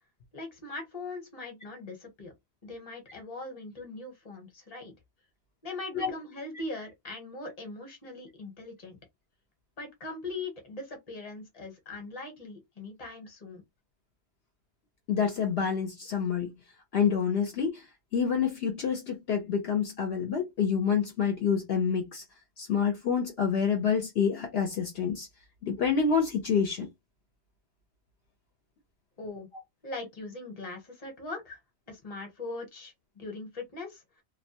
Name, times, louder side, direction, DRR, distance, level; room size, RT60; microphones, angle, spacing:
voice 1, 0.3-2.3 2.6-4.9 5.6-9.0 9.8-13.6 29.2-29.5 29.8-31.6 31.9-34.0, left 2 dB, 35° left, 1.0 m, -40 dB
voice 2, 15.1-16.5 16.9-17.8 18.1-22.2 22.6-25.3 25.6-26.9, left 6 dB, 65° left, 0.8 m, -27 dB
2.3 x 2.1 x 2.7 m
omnidirectional pair, 1.2 m